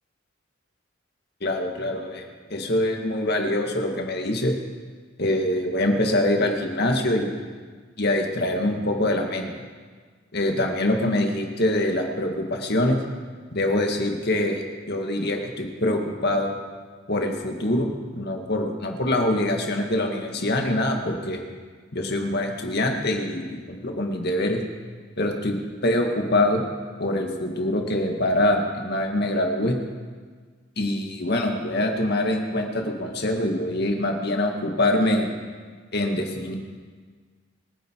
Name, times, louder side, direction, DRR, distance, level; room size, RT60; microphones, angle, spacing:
voice 1, 1.4-4.5 5.2-7.4 8.0-9.5 10.3-13.0 13.5-16.5 17.1-17.9 18.2-21.4 21.9-24.6 25.2-26.7 27.0-29.8 30.8-35.3 35.9-36.5, left 1 dB, 50° left, 2 dB, 2.0 m, -24 dB
27.5 x 9.6 x 4.7 m, 1.6 s
head